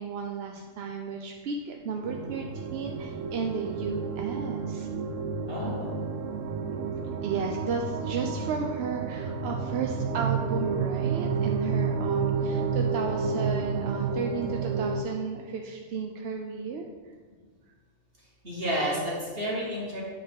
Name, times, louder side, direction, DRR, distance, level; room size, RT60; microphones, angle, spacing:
voice 1, 0.0-4.9 7.2-16.9, right 5 dB, 65° right, 2 dB, 0.7 m, -34 dB
sound 1, 2.0-15.0, right 5 dB, 85° right, 1.0 m, -30 dB
voice 2, 5.5-5.9 18.4-20.0, equal, 45° right, -5 dB, 2.2 m, -30 dB
9.4 x 3.6 x 5.3 m, 1.5 s
omnidirectional pair, 1.3 m